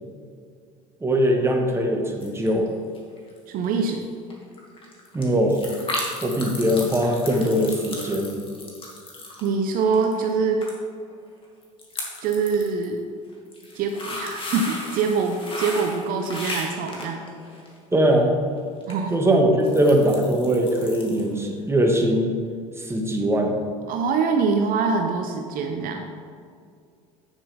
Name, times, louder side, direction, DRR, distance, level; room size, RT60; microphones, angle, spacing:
voice 1, 1.0-2.7 5.1-5.6 6.2-8.3 17.9-18.4 19.1-22.4 22.8-23.6, equal, 15° right, 2 dB, 1.3 m, -21 dB
sound 1, 2.2-2.7 2.9-3.4 3.6-3.7 4.0-4.1 4.3-10.4 10.6-10.7 11.0-11.1 11.6-12.8 13.3-17.8 18.8-18.9 19.3-21.3 21.6-21.7, left 1 dB, 30° left, 2.2 m, -35 dB
voice 2, 3.5-4.1 9.4-10.7 12.2-13.0 13.7-17.2 18.9-19.1 23.9-26.0, right 5 dB, 55° right, 4 dB, 0.8 m, -24 dB
9.1 x 7.2 x 3.5 m, 2.2 s
hypercardioid pair, 80°, 18 cm